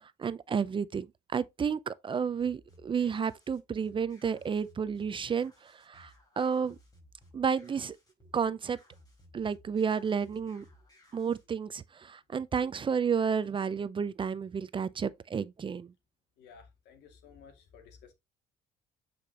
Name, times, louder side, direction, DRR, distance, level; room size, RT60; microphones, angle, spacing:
voice 1, 0.0-6.8 7.3-8.0 8.3-8.8 9.3-10.7 11.1-15.9, right 6 dB, 30° right, 0.6 m, -31 dB
sound 1, 2.4-11.4, left 1 dB, 20° left, 4.6 m, -60 dB
voice 2, 16.4-18.1, left 6 dB, 80° left, 2.4 m, -55 dB
9.0 x 5.2 x 2.9 m
cardioid pair, 110°, 17 cm